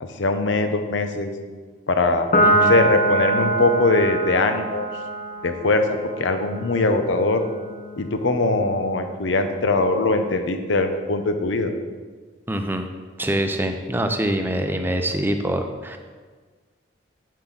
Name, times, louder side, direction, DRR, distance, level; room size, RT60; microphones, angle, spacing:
voice 1, 0.0-1.3 1.9-2.3 2.7-4.9 5.4-7.4 8.0-11.7, left 2 dB, 70° left, 7 dB, 0.8 m, -21 dB
Piano, 2.3-9.0, right 2 dB, 40° left, 0.9 m, -24 dB
voice 2, 2.4-2.8 12.5-12.9 13.2-16.0, right 1 dB, 10° right, 6 dB, 0.5 m, -24 dB
7.6 x 7.5 x 3.9 m, 1.5 s
head